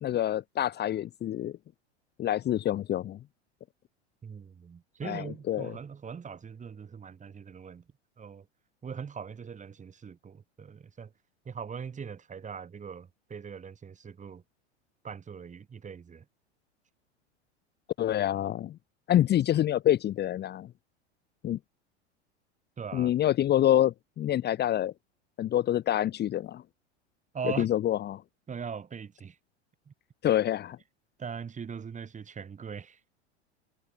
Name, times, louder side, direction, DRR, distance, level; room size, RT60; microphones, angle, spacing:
voice 1, 0.0-1.5 2.2-3.2 5.0-5.7 18.0-18.8 19.1-20.7 21.4-21.6 22.9-24.9 25.4-26.6 27.6-28.2 30.2-30.8, left 12 dB, 30° left, 1.4 m, -26 dB
voice 2, 4.2-7.8 8.2-8.5 8.8-11.1 11.4-14.4 15.0-16.3 22.8-23.1 27.3-27.7 28.5-29.4 29.9-30.0 31.2-33.0, right 6 dB, 20° right, 5.7 m, -41 dB
hypercardioid pair, 90°, 34 cm